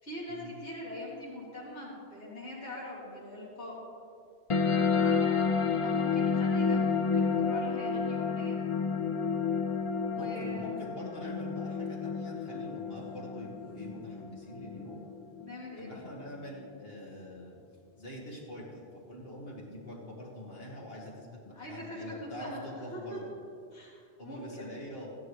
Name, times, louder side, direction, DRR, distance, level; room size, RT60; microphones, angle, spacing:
voice 1, 0.0-3.7 4.9-8.6 10.0-10.7 15.4-16.0 21.5-22.6 22.9-23.2 23.7-24.7, left 1 dB, 75° left, -7 dB, 2.9 m, -43 dB
sound 1, 4.5-15.5, left 5 dB, 40° left, 0.5 m, -30 dB
voice 2, 10.2-15.1 15.8-17.6 18.0-23.3 24.2-25.1, left 1 dB, 60° left, -3 dB, 1.9 m, -44 dB
15.0 x 10.5 x 3.2 m, 2.2 s
omnidirectional pair, 1.1 m